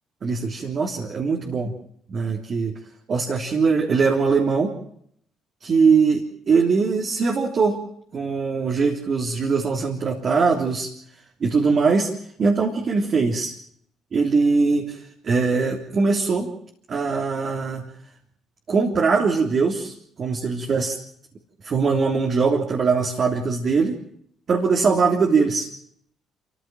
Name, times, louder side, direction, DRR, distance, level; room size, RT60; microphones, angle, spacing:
voice 1, 0.2-1.7 2.1-2.7 3.1-4.7 5.6-7.8 8.1-10.9 11.4-12.1 12.4-13.5 14.1-16.5 16.9-17.8 18.7-20.9 21.6-24.0 24.5-25.7, right 4 dB, 50° right, 1 dB, 3.4 m, -21 dB
27.5 x 16.0 x 7.7 m, 0.69 s
hypercardioid pair, 55°, 0 cm